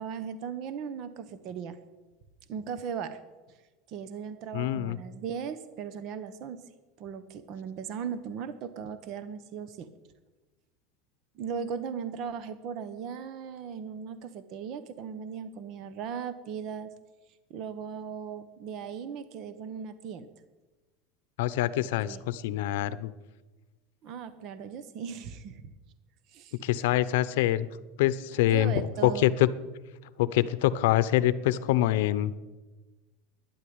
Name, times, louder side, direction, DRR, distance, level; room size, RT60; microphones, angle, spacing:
voice 1, 0.0-1.8 2.5-3.2 3.5-3.6 3.9-6.6 7.0-9.9 11.3-16.9 17.5-20.3 21.7-22.2 24.0-25.6 26.3-26.6 28.5-29.4, right 7 dB, 40° right, 12 dB, 0.9 m, -37 dB
voice 2, 4.5-5.0 21.4-23.1 26.6-27.7 28.0-28.7 29.0-29.5 30.2-32.4, left 14 dB, 75° left, 15 dB, 0.8 m, -25 dB
12.0 x 10.5 x 9.4 m, 1.2 s
supercardioid pair, 170°, 0 cm